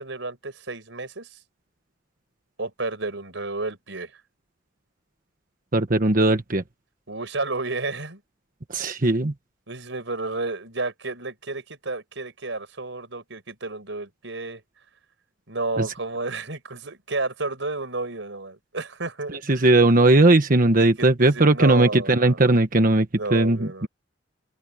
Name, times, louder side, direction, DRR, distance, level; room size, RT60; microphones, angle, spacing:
voice 1, 0.0-1.4 2.6-4.1 7.1-8.2 9.7-14.6 15.5-19.7 20.8-22.4 23.1-23.9, right 3 dB, 70° right, 5.0 m, -31 dB
voice 2, 5.7-6.6 8.7-9.3 15.8-15.9 19.5-23.9, right 2 dB, 45° right, 1.3 m, -18 dB
open air
head